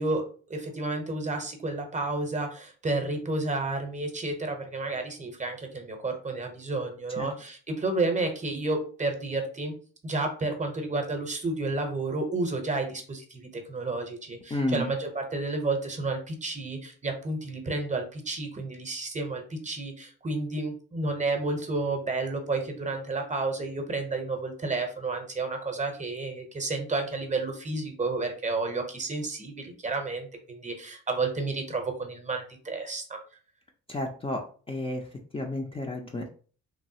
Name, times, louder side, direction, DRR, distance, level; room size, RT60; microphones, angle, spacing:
voice 1, 0.0-9.7 10.0-33.2, right 3 dB, 25° right, 4 dB, 0.8 m, -31 dB
voice 2, 14.5-14.9 33.9-34.4 34.7-35.1 35.3-36.3, left 1 dB, 20° left, 0 dB, 0.5 m, -31 dB
3.1 x 2.3 x 2.7 m, 0.41 s
cardioid pair, 90°, 30 cm